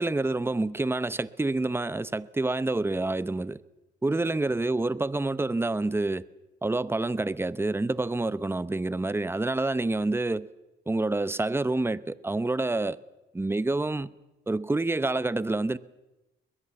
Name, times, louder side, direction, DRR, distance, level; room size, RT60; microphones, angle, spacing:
voice 1, 0.0-3.6 4.0-6.2 6.6-10.5 10.9-13.0 13.3-14.1 14.5-15.8, right 2 dB, 10° right, 0.8 m, -27 dB
22.5 x 21.0 x 7.1 m
cardioid pair, 90°, 20 cm